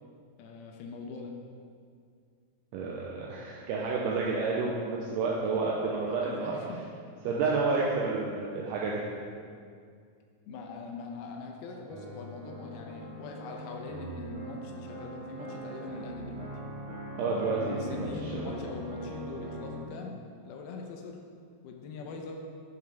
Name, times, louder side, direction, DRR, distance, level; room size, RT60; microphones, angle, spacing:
voice 1, 0.4-1.4 6.1-6.9 10.5-16.5 17.6-20.2 20.4-21.2 21.6-22.4, left 4 dB, 80° left, 1 dB, 2.2 m, -42 dB
voice 2, 2.7-6.5 7.3-9.0 17.2-18.6, right 4 dB, 80° right, -3 dB, 2.5 m, -30 dB
sound 1, 11.9-19.9, right 1 dB, 60° right, 3.3 m, -42 dB
12.0 x 5.2 x 3.4 m, 2.2 s
omnidirectional pair, 5.1 m